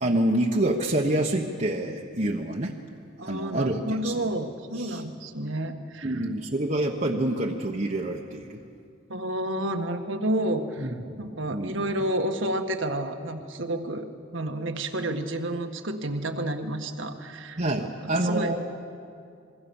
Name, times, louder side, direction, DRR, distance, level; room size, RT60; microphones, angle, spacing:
voice 1, 0.0-2.7 3.3-4.1 4.8-5.0 6.0-8.6 10.8-10.9 11.5-11.7 17.6-18.6, right 1 dB, 40° right, -1 dB, 1.2 m, -27 dB
voice 2, 3.2-6.2 9.1-10.9 11.2-14.1 14.3-18.5, right 1 dB, 75° right, 6 dB, 1.7 m, -30 dB
26.5 x 22.5 x 7.2 m, 2.4 s
head